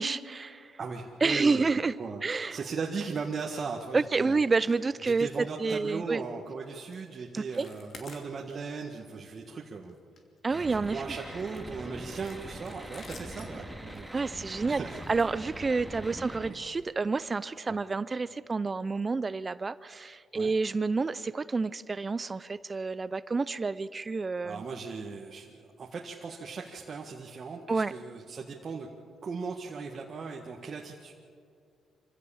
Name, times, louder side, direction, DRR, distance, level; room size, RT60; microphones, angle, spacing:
voice 1, 0.0-0.8 1.2-1.9 2.2-2.6 3.9-6.2 7.3-7.7 10.4-11.0 14.1-14.8 15.1-24.6 27.7-27.9, right 4 dB, 30° right, 17 dB, 0.5 m, -29 dB
voice 2, 0.8-1.6 2.0-4.4 5.0-10.0 10.5-14.1 14.6-15.0 16.1-16.6 17.7-17.8 20.3-20.5 24.4-28.9 29.2-31.1, right 5 dB, 45° right, 0 dB, 1.7 m, -38 dB
sound 1, 4.6-4.8 5.1-5.4 5.7-5.9 6.3-6.5 6.9-7.1 7.4-8.8 9.1-9.3 9.7-10.8 11.4-16.0 16.7-16.9 17.2-17.3 17.8-17.9, left 4 dB, 50° left, 3.0 m, -53 dB
sound 2, 10.5-16.5, right 1 dB, 5° right, 2.3 m, -42 dB
26.0 x 15.5 x 7.1 m, 2.3 s
cardioid pair, 90°, 0 cm